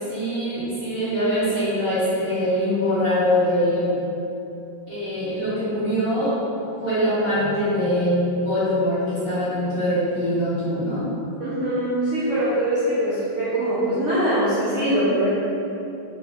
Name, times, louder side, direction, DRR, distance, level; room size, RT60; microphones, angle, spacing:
voice 1, 0.0-4.0 4.9-6.4 6.8-11.0, equal, 30° left, -13 dB, 1.4 m, -23 dB
voice 2, 11.4-15.3, right 1 dB, 65° right, -10 dB, 0.7 m, -22 dB
3.4 x 2.9 x 4.0 m, 2.8 s
omnidirectional pair, 2.2 m